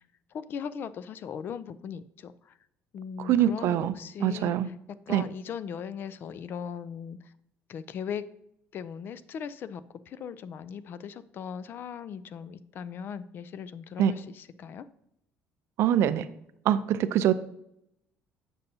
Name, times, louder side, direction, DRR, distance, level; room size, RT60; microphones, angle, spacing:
voice 1, 0.3-2.3 2.9-4.6 4.9-7.2 7.7-8.2 8.7-14.9, left 7 dB, 45° left, 15 dB, 0.3 m, -38 dB
voice 2, 3.2-3.9 4.2-4.7 5.1-5.2 14.0-14.1 15.8-16.3 16.7-17.3, right 10 dB, 65° right, 13 dB, 0.4 m, -24 dB
8.0 x 5.4 x 2.7 m, 0.78 s
cardioid pair, 135°, 5 cm